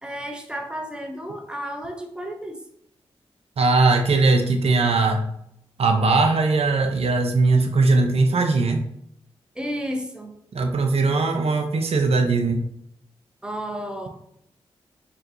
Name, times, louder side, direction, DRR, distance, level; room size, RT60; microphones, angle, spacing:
voice 1, 0.0-2.6 9.5-10.3 13.4-14.1, equal, 10° right, 3 dB, 0.9 m, -32 dB
voice 2, 3.6-5.2 5.8-8.8 10.5-12.6, right 3 dB, 65° right, 4 dB, 0.7 m, -20 dB
4.3 x 3.1 x 2.6 m, 0.73 s
supercardioid pair, 45°, 11 cm